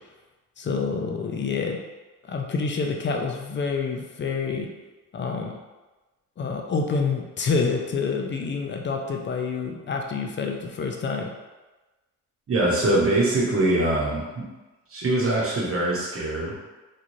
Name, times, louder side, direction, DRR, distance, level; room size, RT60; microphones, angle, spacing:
voice 1, 0.6-1.8 2.3-4.7 5.1-5.5 6.4-11.3, left 4 dB, 35° left, 2 dB, 0.4 m, -27 dB
voice 2, 12.5-14.5 14.9-16.5, right 2 dB, 40° right, -5 dB, 1.0 m, -23 dB
3.1 x 2.5 x 2.6 m, 1.2 s
cardioid pair, 95°, 33 cm